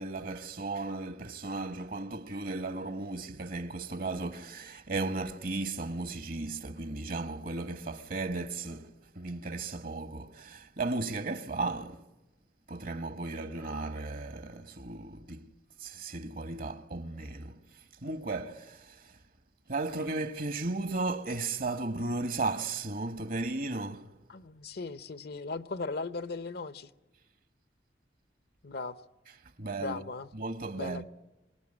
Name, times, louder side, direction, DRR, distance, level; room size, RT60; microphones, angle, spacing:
voice 1, 0.0-12.0 12.7-15.5 15.8-17.6 18.0-19.1 19.7-24.1 29.6-30.0 30.3-31.0, right 3 dB, 55° right, 1.2 m, -35 dB
voice 2, 24.3-26.9 28.6-29.0 29.8-30.3 30.8-31.0, left 3 dB, 65° left, 0.8 m, -37 dB
26.0 x 19.0 x 9.8 m
head